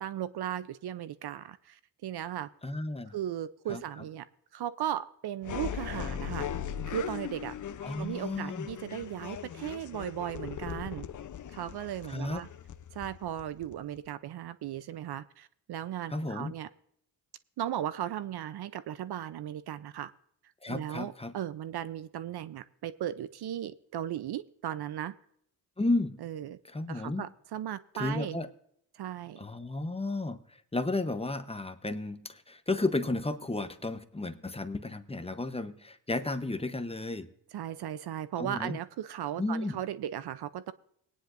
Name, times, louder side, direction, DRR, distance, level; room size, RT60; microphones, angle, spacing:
voice 1, 0.0-2.5 3.1-4.3 4.5-6.5 6.9-7.5 8.0-11.1 11.5-12.5 12.9-16.7 17.6-20.1 20.7-25.1 26.2-26.6 26.9-28.4 28.9-29.4 37.5-40.7, right 11 dB, 60° right, 15 dB, 0.6 m, -36 dB
voice 2, 2.6-3.2 3.7-3.8 7.8-8.7 12.1-12.4 16.1-16.5 20.6-21.3 25.8-26.2 26.7-27.2 27.9-28.5 29.4-30.4 30.7-37.3 38.4-38.8 39.4-39.8, left 2 dB, 15° left, 9 dB, 0.9 m, -33 dB
sound 1, 5.4-14.1, left 9 dB, 40° left, 0.7 m, -39 dB
19.0 x 9.8 x 2.6 m, 0.69 s
supercardioid pair, 65°, 45 cm